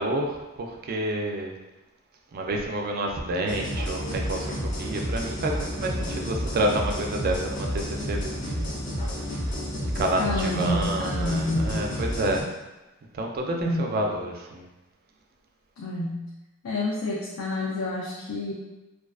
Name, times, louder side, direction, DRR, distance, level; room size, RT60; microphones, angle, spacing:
voice 1, 0.0-1.5 2.3-8.7 10.0-12.4 13.1-14.6, right 1 dB, 45° right, 2 dB, 0.3 m, -29 dB
sound 1, 3.5-12.4, equal, 35° left, 0.6 m, -30 dB
voice 2, 10.0-11.9 13.5-13.9 15.8-16.2 16.6-18.5, left 2 dB, 90° left, -4 dB, 0.4 m, -29 dB
2.4 x 2.3 x 2.3 m, 1.1 s
head